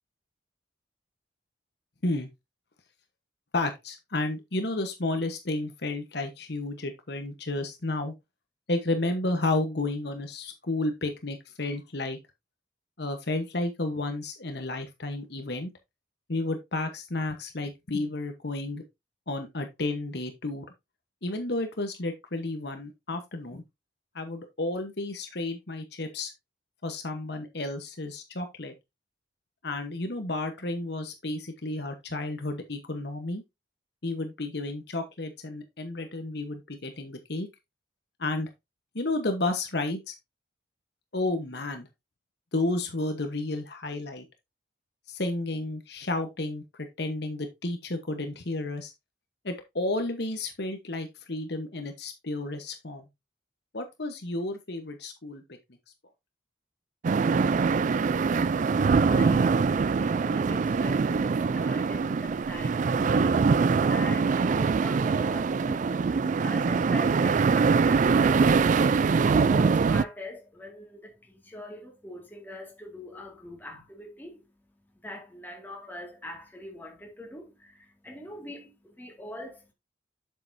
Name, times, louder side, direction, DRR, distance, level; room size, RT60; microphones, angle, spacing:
voice 1, 3.5-8.1 8.7-12.2 13.0-15.7 16.3-18.8 19.3-20.6 21.2-23.6 24.1-26.3 26.8-28.7 29.6-33.4 34.0-37.5 38.2-38.5 38.9-40.1 41.1-41.9 42.5-44.2 45.1-48.9 49.4-53.1 53.7-55.4, left 2 dB, 60° left, 1.1 m, -32 dB
sound 1, 57.0-70.0, right 5 dB, 40° right, 0.3 m, -23 dB
voice 2, 58.7-79.7, left 1 dB, 10° left, 2.1 m, -43 dB
7.7 x 6.7 x 2.7 m
head